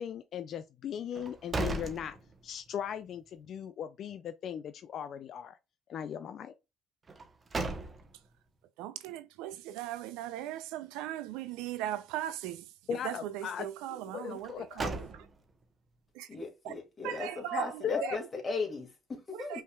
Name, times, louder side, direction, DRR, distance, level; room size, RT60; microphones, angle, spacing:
voice 1, 0.0-2.2 2.4-5.6 5.9-6.5 12.9-13.7 13.9-14.9 17.8-18.2, left 8 dB, 60° left, 0.4 m, -38 dB
sound 1, 1.1-2.8 3.2-3.3 7.1-8.3 14.4-15.6, right 2 dB, 30° right, 1.0 m, -37 dB
voice 2, 8.8-15.3 16.1-16.3 16.6-16.7 17.0-18.3 19.3-19.6, right 13 dB, 85° right, 0.5 m, -39 dB
voice 3, 16.3-19.6, left 3 dB, 30° left, 2.0 m, -37 dB
5.3 x 3.5 x 2.3 m
supercardioid pair, 80°, 0 cm